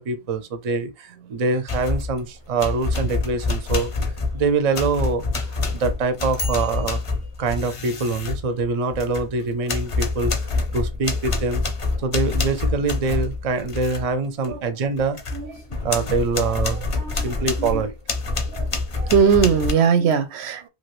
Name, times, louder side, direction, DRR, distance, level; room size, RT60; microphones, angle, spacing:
voice 1, 0.0-3.9 4.3-7.0 7.4-10.3 10.7-11.7 12.0-15.2 15.8-17.9, right 4 dB, 45° right, 0.5 m, -24 dB
sound 1, 1.7-2.2 2.6-9.3 9.7-14.1 14.4-14.6 15.0-19.7, left 3 dB, 40° left, 0.5 m, -26 dB
voice 2, 15.3-15.7 16.7-17.3 17.6-17.8 18.5-18.7 19.0-20.7, right 6 dB, 80° right, 0.9 m, -21 dB
2.9 x 2.4 x 3.0 m
omnidirectional pair, 1.1 m